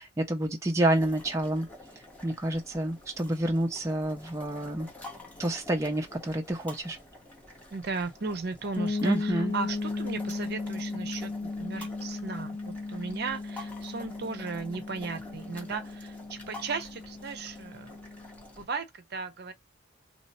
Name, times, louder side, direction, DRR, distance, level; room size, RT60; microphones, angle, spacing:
voice 1, 0.0-1.7 2.2-4.9 5.4-7.0 9.0-9.5, right 1 dB, 15° right, 0.4 m, -28 dB
sound 1, 0.9-18.6, left 1 dB, 5° left, 0.8 m, -49 dB
voice 2, 7.7-17.9 18.5-19.5, right 4 dB, 50° right, 0.7 m, -36 dB
sound 2, 8.8-18.4, left 3 dB, 50° left, 0.8 m, -36 dB
3.2 x 2.0 x 4.1 m
head